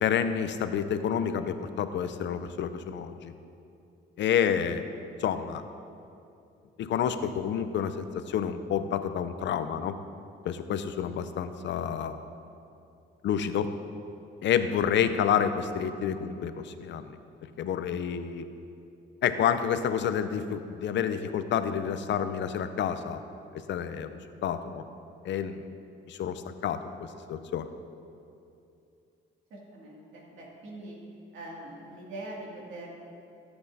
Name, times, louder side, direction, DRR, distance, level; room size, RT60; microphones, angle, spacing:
voice 1, 0.0-3.3 4.2-4.9 5.2-5.6 6.8-10.0 10.4-12.3 13.2-13.7 14.4-17.1 17.6-18.4 19.2-23.2 23.7-24.1 24.4-24.8 25.2-25.6 26.1-26.9 27.3-27.7, left 8 dB, 65° left, 10 dB, 0.6 m, -29 dB
voice 2, 29.5-31.0 31.3-32.9, right 1 dB, 80° right, -3 dB, 2.4 m, -43 dB
15.5 x 7.9 x 2.7 m, 2.6 s
cardioid pair, 90°, 20 cm